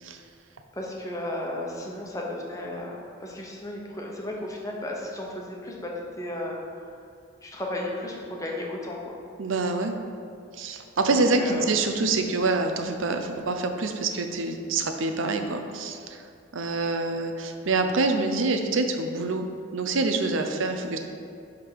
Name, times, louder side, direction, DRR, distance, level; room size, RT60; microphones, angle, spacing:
voice 1, 0.7-5.9 6.2-7.0 7.4-9.1 11.1-11.7, left 1 dB, 15° left, -2 dB, 1.0 m, -34 dB
voice 2, 9.4-9.9 10.6-16.2 16.5-19.4 19.7-21.0, right 3 dB, 85° right, 6 dB, 0.6 m, -26 dB
10.5 x 3.7 x 4.7 m, 2.5 s
head